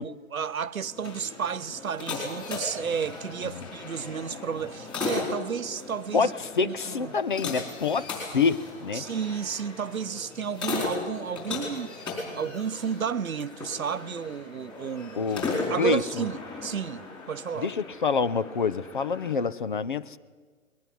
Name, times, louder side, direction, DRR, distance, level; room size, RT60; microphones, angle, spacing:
voice 1, 0.0-6.3 6.6-7.2 8.9-11.9 12.4-15.2 15.7-17.7, right 7 dB, 90° right, 1.0 m, -32 dB
sound 1, 0.8-19.3, left 3 dB, 10° left, 4.6 m, -37 dB
voice 2, 6.1-9.1 15.2-15.5 15.8-16.0 17.6-20.2, left 5 dB, 40° left, 0.6 m, -27 dB
21.0 x 18.0 x 9.2 m
hypercardioid pair, 155°, 41 cm